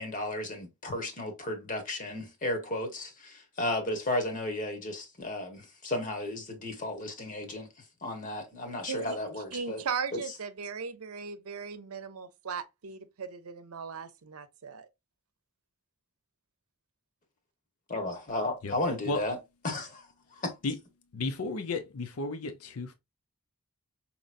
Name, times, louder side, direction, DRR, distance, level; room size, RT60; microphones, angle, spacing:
voice 1, 0.0-7.7 8.0-9.8 10.1-10.2 17.9-19.4 19.6-20.0 20.4-20.6, left 1 dB, 35° left, 1.2 m, -34 dB
voice 2, 8.9-14.9, right 6 dB, 80° right, 0.6 m, -38 dB
voice 3, 21.1-22.9, left 3 dB, 80° left, 0.6 m, -33 dB
5.1 x 3.0 x 2.5 m
head